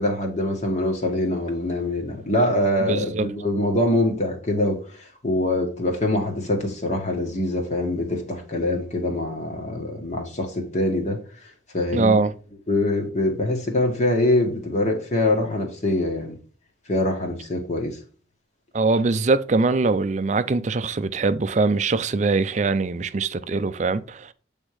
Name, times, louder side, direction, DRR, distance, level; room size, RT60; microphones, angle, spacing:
voice 1, 0.0-11.2 11.7-12.2 12.7-16.4 16.9-18.0, left 1 dB, 40° left, 1.7 m, -24 dB
voice 2, 2.9-3.3 11.9-12.3 18.7-24.3, right 3 dB, 40° right, 0.4 m, -22 dB
8.2 x 3.6 x 4.8 m
head